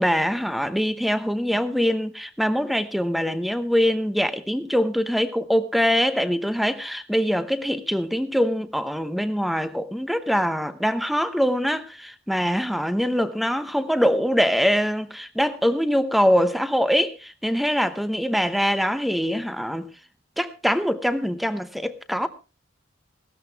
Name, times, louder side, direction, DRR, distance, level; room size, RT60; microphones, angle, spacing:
voice 1, 0.0-19.9 20.4-22.3, equal, ahead, 0.8 m, -23 dB
17.5 x 13.0 x 3.4 m
head